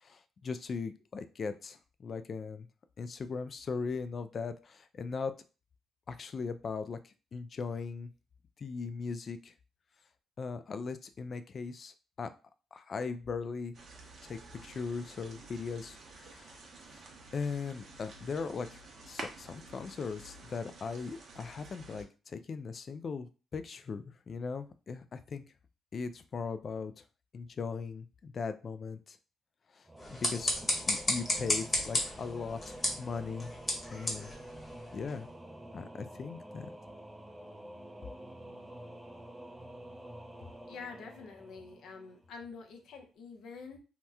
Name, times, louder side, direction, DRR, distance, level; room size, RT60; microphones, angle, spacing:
voice 1, 0.0-2.7 3.0-5.3 6.1-8.1 8.6-9.5 10.4-12.3 12.7-13.8 14.2-16.6 16.9-17.0 17.3-23.3 23.5-25.4 25.9-26.9 27.3-29.2 29.7-29.8 30.1-30.5 30.9-33.5 33.9-34.3 34.9-35.3 35.7-36.7, left 5 dB, 45° left, 10 dB, 0.3 m, -39 dB
sound 1, 13.7-22.0, right 3 dB, 55° right, 0.8 m, -50 dB
Singing / Musical instrument, 29.9-42.4, right 1 dB, 15° right, 0.5 m, -48 dB
sound 2, 30.0-35.2, left 1 dB, 25° left, 1.1 m, -34 dB
voice 2, 40.7-43.8, left 5 dB, 75° left, 4 dB, 0.7 m, -47 dB
2.9 x 2.1 x 3.5 m, 0.33 s
cardioid pair, 90°, 0 cm